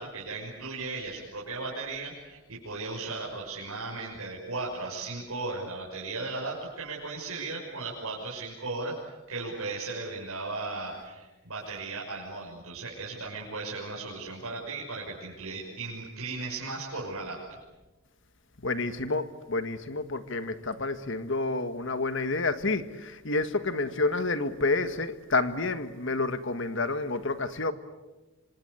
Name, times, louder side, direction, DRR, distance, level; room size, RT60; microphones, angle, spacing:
voice 1, 0.0-17.4, right 3 dB, 80° right, -4 dB, 6.3 m, -36 dB
voice 2, 18.6-27.7, left 3 dB, 55° left, 11 dB, 1.7 m, -29 dB
26.5 x 26.0 x 8.2 m, 1.1 s
head